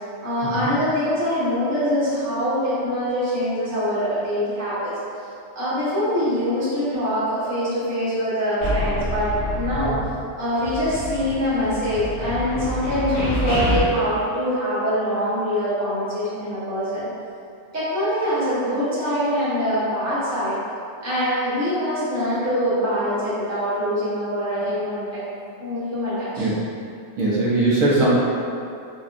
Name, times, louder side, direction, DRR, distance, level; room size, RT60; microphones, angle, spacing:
voice 1, 0.2-4.9 5.5-9.9 10.4-17.1 17.7-20.6 21.0-25.2 25.6-26.5, equal, 15° right, -11 dB, 0.8 m, -24 dB
sound 1, 8.6-10.3 10.5-13.8, equal, 50° left, 1.5 m, -27 dB
voice 2, 27.2-28.1, right 2 dB, 75° right, -6 dB, 1.0 m, -20 dB
4.1 x 2.2 x 2.4 m, 2.5 s
omnidirectional pair, 1.5 m